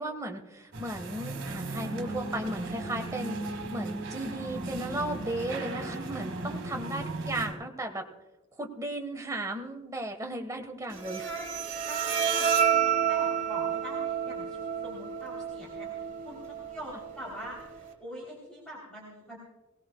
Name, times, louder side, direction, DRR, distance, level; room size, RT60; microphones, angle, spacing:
voice 1, 0.0-3.4 3.7-8.1 8.6-11.3, right 1 dB, 15° right, 3 dB, 1.4 m, -35 dB
sound 1, 0.7-7.5, right 2 dB, 60° right, 2.1 m, -36 dB
Bowed string instrument, 10.9-17.9, right 8 dB, 40° right, 1.5 m, -30 dB
voice 2, 11.2-11.6 11.8-19.4, equal, 5° left, -5 dB, 3.3 m, -44 dB
21.5 x 18.0 x 2.3 m, 1.1 s
head